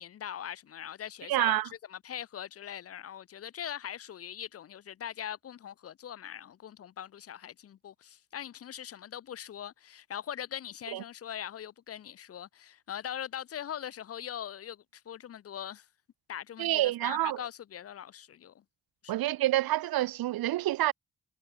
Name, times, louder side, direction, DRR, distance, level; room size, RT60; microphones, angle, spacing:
voice 1, 0.0-1.6 1.9-15.9 16.3-18.6 19.0-19.1, left 10 dB, 40° left, 0.5 m, -41 dB
voice 2, 1.3-1.7 10.9-11.0 16.6-17.4 19.1-20.9, right 15 dB, 75° right, 0.5 m, -28 dB
cardioid pair, 65°, 36 cm